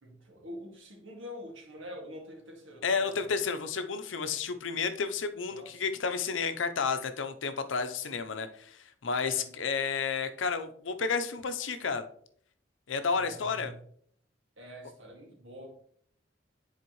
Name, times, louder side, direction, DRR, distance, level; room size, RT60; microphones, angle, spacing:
voice 1, 0.0-3.3 5.5-5.8 9.1-9.6 13.1-13.7 14.6-15.7, equal, 90° right, 0 dB, 2.0 m, -46 dB
voice 2, 2.8-12.0 12.9-13.7, left 5 dB, 85° left, 9 dB, 0.7 m, -31 dB
9.7 x 4.3 x 3.1 m, 0.62 s
head